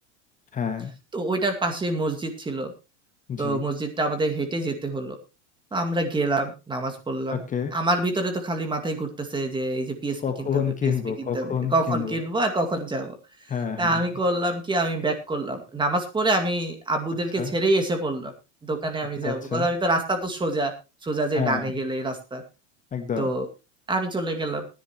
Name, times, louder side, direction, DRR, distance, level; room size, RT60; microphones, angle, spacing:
voice 1, 0.5-0.9 3.3-3.6 7.3-7.7 10.2-12.2 13.5-14.0 17.3-17.5 19.2-19.7 21.3-21.7 22.9-23.3, left 7 dB, 20° left, 6 dB, 1.4 m, -28 dB
voice 2, 1.1-2.7 3.4-5.2 5.7-7.4 7.7-10.9 11.2-13.2 13.8-18.3 18.6-20.7 21.0-22.4 23.2-23.5 23.9-24.6, right 2 dB, 15° right, 5 dB, 2.1 m, -26 dB
19.0 x 10.5 x 3.0 m, 0.27 s
supercardioid pair, 130°, 36 cm